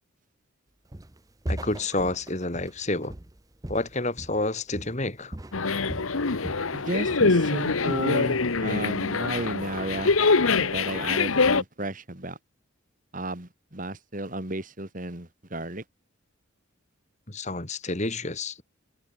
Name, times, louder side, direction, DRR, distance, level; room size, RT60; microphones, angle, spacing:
Walk footsteps, 0.9-1.2 1.4-4.5 4.7-5.1 5.3-6.7 7.0-7.4, right 1 dB, 15° right, 0.9 m, -38 dB
voice 1, 1.5-3.1 3.7-5.4 17.3-18.6, left 2 dB, 35° left, 2.8 m, -29 dB
sound 1, 5.5-11.6, left 4 dB, 85° left, 1.2 m, -24 dB
voice 2, 6.7-10.2 10.5-12.4 13.1-15.8, right 1 dB, 40° right, 2.8 m, -33 dB
head